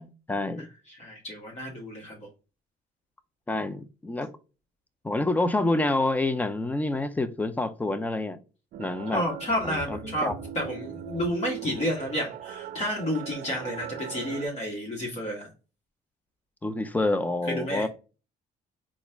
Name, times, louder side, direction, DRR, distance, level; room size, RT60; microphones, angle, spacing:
voice 1, 0.0-0.7 3.5-4.3 5.0-8.4 8.8-9.2 9.6-10.3 16.6-17.9, left 2 dB, 10° left, 0.4 m, -28 dB
voice 2, 0.6-2.3 9.1-15.5 17.5-17.9, equal, 40° left, 1.4 m, -31 dB
sound 1, 8.7-14.5, right 10 dB, 60° right, 0.5 m, -40 dB
4.1 x 2.4 x 3.4 m
cardioid pair, 110°, 17 cm